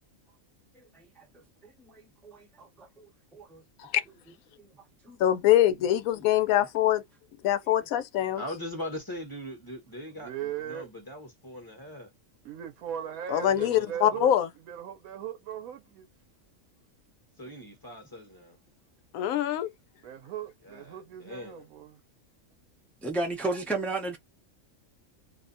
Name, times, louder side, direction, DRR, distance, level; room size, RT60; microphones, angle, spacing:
voice 1, 0.9-1.2 1.8-2.9 3.3-3.6 4.6-4.7 5.0-5.2 23.0-24.2, right 2 dB, ahead, 0.4 m, -33 dB
voice 2, 5.2-7.0 7.4-8.4 13.3-14.5 19.1-19.7, left 12 dB, 85° left, 1.0 m, -24 dB
voice 3, 8.3-12.1 13.4-14.2 17.4-18.6 20.6-21.7, left 1 dB, 20° left, 0.9 m, -41 dB
voice 4, 10.1-10.9 12.4-14.3 14.7-16.1 20.0-22.0, right 10 dB, 90° right, 1.0 m, -38 dB
2.6 x 2.1 x 2.5 m
omnidirectional pair, 1.4 m